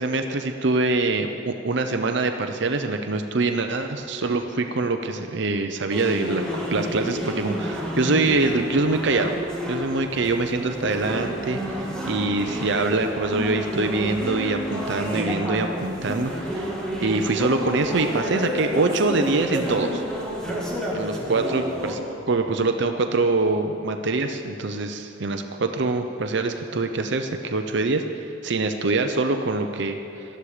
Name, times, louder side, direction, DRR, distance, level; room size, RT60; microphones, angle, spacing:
voice 1, 0.0-6.4 6.7-9.3 9.7-16.7 17.0-20.0 20.9-22.0 22.3-30.2, right 3 dB, 65° right, 6 dB, 0.7 m, -24 dB
sound 1, 5.9-21.9, equal, 5° left, 2.5 m, -30 dB
18.5 x 13.0 x 5.0 m, 2.8 s
head